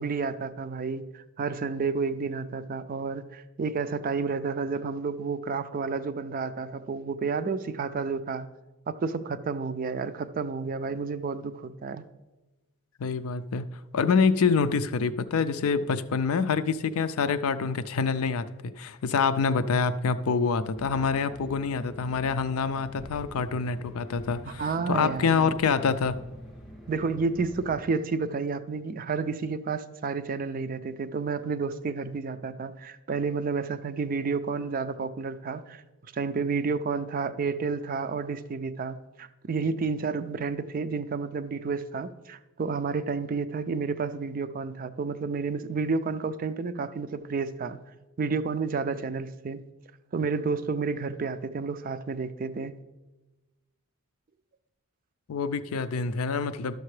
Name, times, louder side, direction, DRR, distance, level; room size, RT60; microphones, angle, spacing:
voice 1, 0.0-8.5 8.9-12.0 24.5-25.6 26.9-47.8 48.2-49.6 50.1-52.8, right 4 dB, 40° right, 12 dB, 0.3 m, -30 dB
voice 2, 13.0-13.7 13.9-26.2 55.3-56.8, left 5 dB, 75° left, 12 dB, 0.4 m, -26 dB
sound 1, 20.8-27.8, equal, ahead, 0.7 m, -46 dB
12.0 x 6.6 x 3.2 m, 1.1 s
head